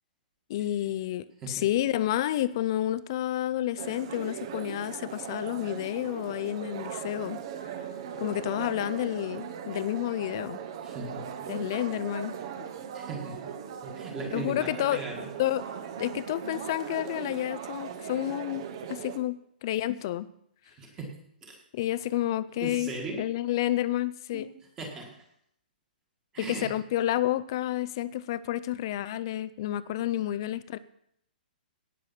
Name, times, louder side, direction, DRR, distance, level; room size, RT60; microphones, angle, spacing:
voice 1, 0.5-7.4 8.2-10.6 11.5-12.4 14.3-15.0 15.4-15.6 16.0-20.3 21.7-22.9 23.2-24.5 26.4-30.8, left 13 dB, 25° left, 16 dB, 0.4 m, -30 dB
Crowd of people in a small room, 3.8-19.2, right 8 dB, 30° right, 0.8 m, -39 dB
voice 2, 10.8-11.5 12.9-13.5 13.8-15.2 20.7-21.6 22.6-23.2 24.3-24.5 24.8-25.2 26.3-26.7 30.3-30.4, right 3 dB, 10° right, 1 dB, 1.7 m, -38 dB
17.5 x 6.8 x 5.7 m, 0.72 s
hypercardioid pair, 180°, 5 cm